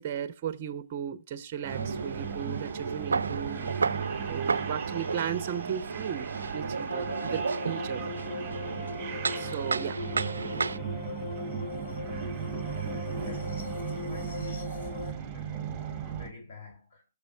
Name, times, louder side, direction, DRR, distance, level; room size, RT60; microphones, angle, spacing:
voice 1, 0.0-3.6 4.3-8.2 9.4-10.0, right 8 dB, 35° right, 0.7 m, -36 dB
sound 1, 1.6-16.3, right 8 dB, 15° right, 2.3 m, -37 dB
sound 2, 1.7-10.8, right 4 dB, 90° right, 0.3 m, -33 dB
sound 3, 6.9-15.1, left 3 dB, 65° left, 2.7 m, -39 dB
voice 2, 13.1-15.0 15.3-17.0, left 3 dB, 45° left, 2.7 m, -47 dB
14.0 x 7.0 x 2.2 m
hypercardioid pair, 150°, 0 cm